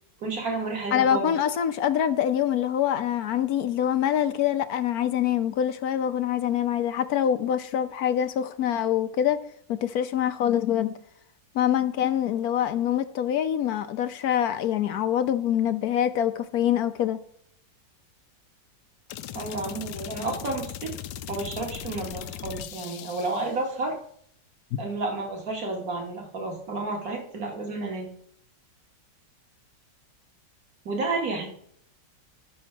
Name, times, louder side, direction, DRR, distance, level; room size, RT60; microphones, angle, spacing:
voice 1, 0.2-1.3 19.3-20.9 21.3-23.9 24.8-28.1 30.9-31.5, right 3 dB, 55° right, 2.6 m, -31 dB
voice 2, 0.9-9.4 9.7-10.9 11.5-17.2, left 10 dB, 65° left, 1.0 m, -25 dB
sound 1, 19.1-23.5, left 10 dB, 90° left, 1.3 m, -38 dB
12.0 x 6.4 x 5.9 m
omnidirectional pair, 1.9 m